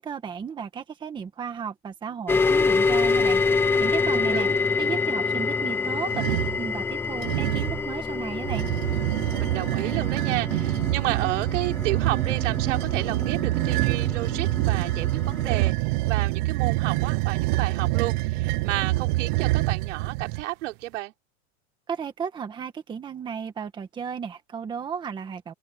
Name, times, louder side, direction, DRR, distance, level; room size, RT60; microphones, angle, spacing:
voice 1, 0.0-8.7 21.9-25.5, right 7 dB, 10° right, 1.6 m, -34 dB
sound 1, 2.3-15.7, left 4 dB, 5° left, 0.7 m, -27 dB
voice 2, 4.1-4.6 9.4-15.8 16.1-21.1, right 17 dB, 70° right, 4.0 m, -31 dB
sound 2, 6.1-6.6 7.2-7.8 8.4-20.4, right 19 dB, 40° right, 0.9 m, -26 dB
open air
supercardioid pair, 175°, 37 cm